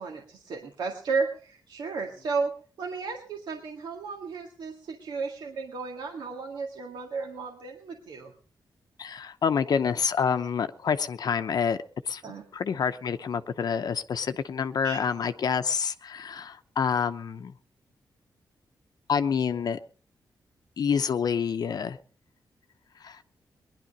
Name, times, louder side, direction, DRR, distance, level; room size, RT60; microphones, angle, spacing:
voice 1, 0.0-2.5 2.8-8.3 12.2-12.4 14.8-15.0, right 4 dB, 85° right, 2 dB, 1.8 m, -33 dB
voice 2, 9.0-11.8 12.1-12.2 12.5-17.5 19.1-19.8 20.8-22.0 23.0-23.2, left 6 dB, 60° left, 9 dB, 0.7 m, -27 dB
20.0 x 11.0 x 5.3 m, 0.43 s
wide cardioid pair, 120°, 8 cm